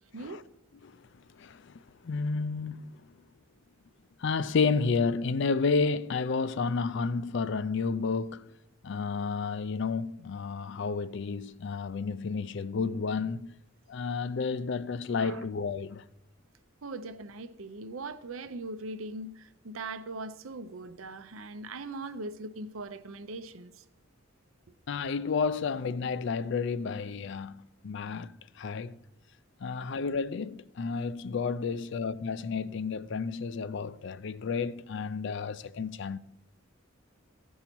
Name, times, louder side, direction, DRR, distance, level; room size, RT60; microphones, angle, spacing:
voice 1, 1.4-2.9 4.2-8.5 8.8-13.5 13.9-16.0 24.9-29.0 29.6-36.2, left 4 dB, 60° left, 0.4 m, -31 dB
voice 2, 16.8-23.8 29.7-29.8, right 2 dB, 85° right, 0.7 m, -40 dB
15.5 x 5.5 x 4.5 m
head